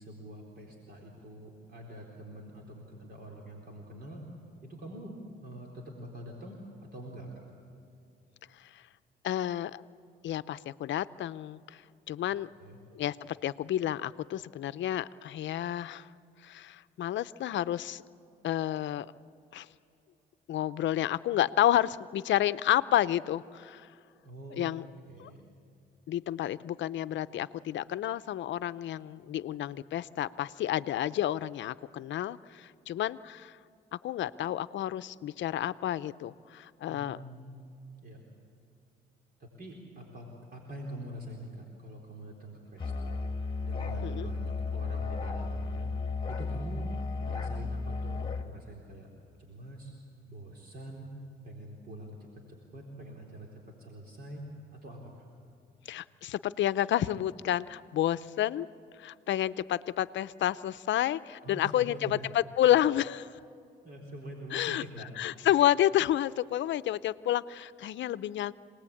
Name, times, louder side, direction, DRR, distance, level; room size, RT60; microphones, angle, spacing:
voice 1, 0.0-4.3 4.6-7.4 12.6-12.8 24.2-24.7 25.1-25.4 36.9-37.7 38.0-38.2 39.4-43.2 43.6-45.9 46.3-46.9 47.3-49.1 49.4-49.9 50.3-51.1 51.4-54.4 54.7-55.3 61.4-62.3 63.8-65.1, right 1 dB, 50° right, -1 dB, 4.1 m, -45 dB
voice 2, 9.2-9.8 10.2-11.8 12.1-12.5 12.9-16.1 16.4-18.0 18.4-19.1 19.5-19.7 20.5-23.9 24.6-24.8 25.2-25.3 26.1-33.6 33.9-37.2 44.0-44.3 55.9-58.7 59.0-63.4 64.5-64.8 65.2-68.5, left 12 dB, 70° left, 15 dB, 0.6 m, -30 dB
Musical instrument, 42.8-48.5, left 4 dB, 25° left, 1.7 m, -34 dB
27.0 x 19.5 x 8.6 m, 2.6 s
cardioid pair, 90°, 20 cm